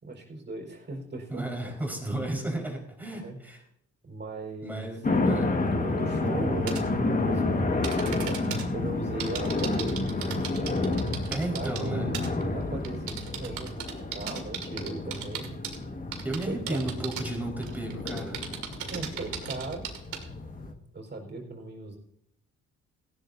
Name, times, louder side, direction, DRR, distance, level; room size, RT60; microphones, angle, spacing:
voice 1, 0.0-1.7 3.1-3.4 4.0-4.9 5.6-8.4 8.7-10.7 11.5-12.2 12.5-15.5 16.5-16.9 18.9-19.9 20.9-22.0, right 2 dB, 35° right, 2 dB, 4.7 m, -38 dB
voice 2, 1.3-3.6 4.6-5.5 11.3-12.1 16.2-18.5, right 1 dB, 5° right, 0 dB, 4.9 m, -34 dB
sound 1, 5.0-20.7, left 2 dB, 30° left, 1.8 m, -30 dB
sound 2, 6.7-6.8 7.8-8.6 9.2-11.9 12.1-12.4 12.8-15.8 16.1-17.3 17.6-20.2, right 9 dB, 80° right, 2.3 m, -36 dB
18.0 x 15.0 x 2.8 m, 0.74 s
cardioid pair, 90°, 30 cm